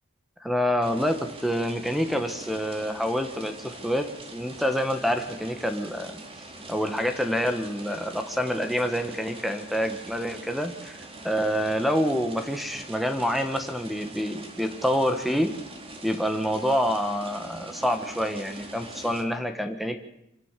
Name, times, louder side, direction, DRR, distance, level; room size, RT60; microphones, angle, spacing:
voice 1, 0.4-4.1 4.3-6.1 6.7-11.0 11.2-15.5 16.0-20.0, equal, ahead, 7 dB, 1.5 m, -27 dB
sound 1, 0.8-19.2, right 2 dB, 30° right, 3.4 m, -43 dB
25.5 x 17.0 x 7.5 m, 0.82 s
head